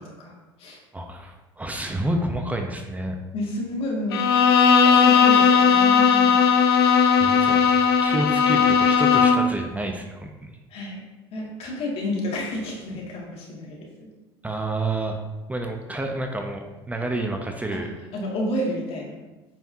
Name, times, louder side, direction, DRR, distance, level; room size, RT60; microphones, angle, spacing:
voice 1, 0.0-0.8 3.3-4.3 4.8-6.4 10.7-11.0 11.3-13.9 17.7-17.9 18.1-19.3, left 1 dB, 50° left, -2 dB, 2.3 m, -30 dB
voice 2, 0.9-3.2 7.2-7.6 8.0-10.5 14.4-15.2 15.5-17.9, right 1 dB, 10° right, 3 dB, 0.9 m, -29 dB
Bowed string instrument, 4.1-9.6, left 6 dB, 85° left, 0.6 m, -17 dB
9.0 x 5.7 x 2.8 m, 1.1 s
hypercardioid pair, 70°, 13 cm